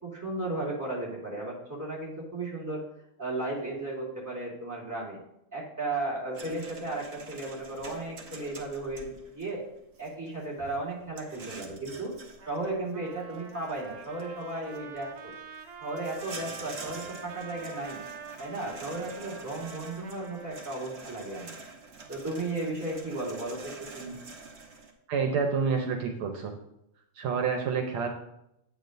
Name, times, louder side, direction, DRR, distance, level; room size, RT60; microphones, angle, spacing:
voice 1, 0.0-2.8 3.2-5.2 5.5-9.6 10.0-12.1 12.4-15.3 15.8-18.0 18.4-21.5 22.1-24.2, right 2 dB, 10° right, -5 dB, 2.7 m, -35 dB
sound 1, 6.3-24.9, right 4 dB, 40° right, 1.0 m, -47 dB
Trumpet, 12.4-20.8, right 5 dB, 60° right, 1.2 m, -46 dB
voice 2, 25.1-26.5 27.2-28.1, right 5 dB, 75° right, 4 dB, 1.7 m, -28 dB
9.2 x 9.0 x 2.6 m, 0.81 s
omnidirectional pair, 2.4 m